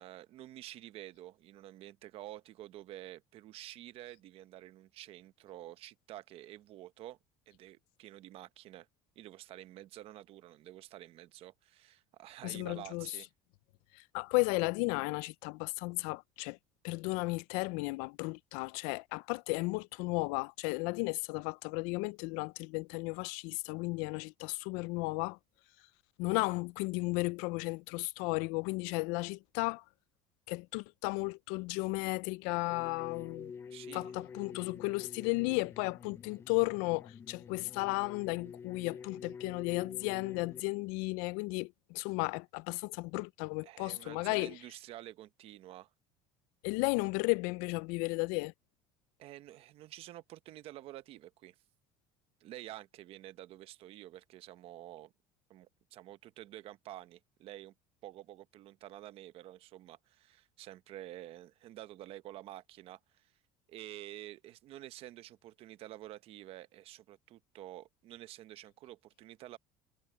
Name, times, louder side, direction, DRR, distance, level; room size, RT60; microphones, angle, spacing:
voice 1, 0.0-7.2 7.5-8.9 9.2-13.3 33.7-34.1 43.6-45.9 49.2-51.5 52.4-55.1 55.5-57.7 58.0-63.3 63.7-69.6, right 14 dB, 50° right, 0.8 m, -49 dB
voice 2, 12.4-13.1 13.9-16.6 16.8-25.4 26.2-29.8 30.5-33.5 33.9-44.6 46.6-48.5, left 26 dB, 85° left, 0.4 m, -34 dB
sound 1, 32.7-40.6, left 6 dB, 20° left, 0.4 m, -48 dB
cardioid pair, 165°, 13 cm